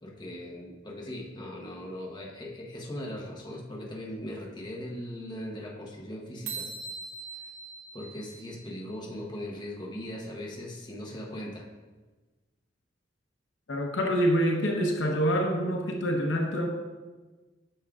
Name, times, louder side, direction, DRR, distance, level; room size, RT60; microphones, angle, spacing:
voice 1, 0.0-6.7 7.3-7.4 7.9-11.7, left 1 dB, 25° left, -2 dB, 1.0 m, -39 dB
sound 1, 6.5-9.1, right 4 dB, 75° right, 1.1 m, -41 dB
voice 2, 13.7-16.7, equal, 75° left, 2 dB, 0.8 m, -26 dB
8.8 x 6.3 x 2.4 m, 1.3 s
head